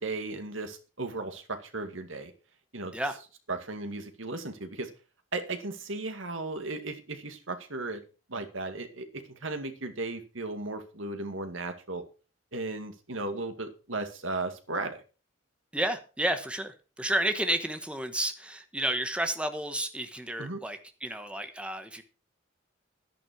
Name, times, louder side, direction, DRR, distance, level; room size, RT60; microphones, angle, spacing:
voice 1, 0.0-2.3 2.7-2.9 3.5-4.9 5.3-8.0 8.3-12.0 12.5-15.0 20.4-20.6, right 2 dB, 80° right, 7 dB, 2.2 m, -36 dB
voice 2, 15.7-22.0, right 1 dB, 5° right, 8 dB, 1.1 m, -31 dB
12.5 x 10.5 x 4.6 m, 0.34 s
head